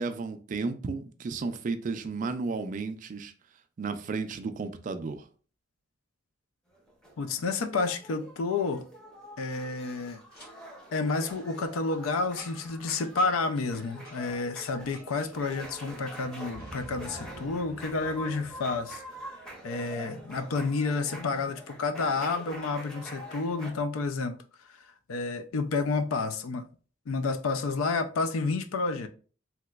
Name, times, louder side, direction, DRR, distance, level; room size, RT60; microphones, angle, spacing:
voice 1, 0.0-3.3 3.8-5.2, right 4 dB, 40° right, 0.3 m, -33 dB
sound 1, 6.7-23.7, right 1 dB, 5° left, 0.6 m, -46 dB
voice 2, 7.2-8.8 9.4-10.2 10.9-19.0 19.6-24.4 25.1-26.6 27.1-29.1, left 3 dB, 90° left, 0.4 m, -30 dB
Boom, 10.3-10.5 11.2-11.4 12.4-12.8 13.2-13.5 14.0-14.2 14.9-15.3 16.5-19.2, right 1 dB, 50° left, 1.5 m, -48 dB
3.2 x 2.9 x 2.3 m
head